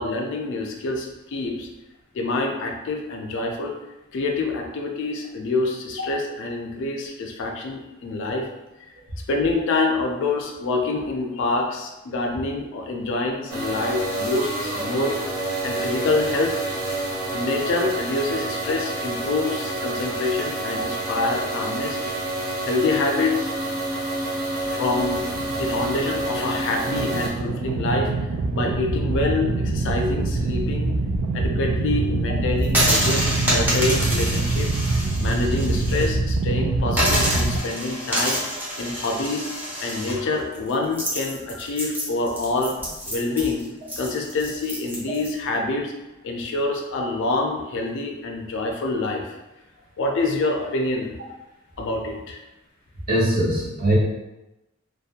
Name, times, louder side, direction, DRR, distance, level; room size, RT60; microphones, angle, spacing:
voice 1, 0.0-1.7 2.1-3.8 4.1-8.5 9.3-15.2 15.6-16.5 17.3-22.0 22.6-23.5 24.7-25.2 25.6-28.1 28.5-30.9 31.3-38.4 38.8-39.5 39.8-42.7 43.1-43.6 44.0-45.9 46.2-49.4 50.0-51.2 51.8-52.4, left 3 dB, 65° left, 2 dB, 0.4 m, -26 dB
sound 1, 13.5-27.3, right 2 dB, 85° right, 0.7 m, -28 dB
voice 2, 24.0-24.3 53.1-54.0, right 1 dB, 45° right, -6 dB, 0.8 m, -23 dB
sound 2, 25.1-37.6, right 2 dB, 60° right, 0.3 m, -25 dB
sound 3, 32.6-36.1 36.4-36.5 36.9-45.3, equal, 10° right, 0.6 m, -27 dB
2.4 x 2.1 x 2.7 m, 0.98 s
head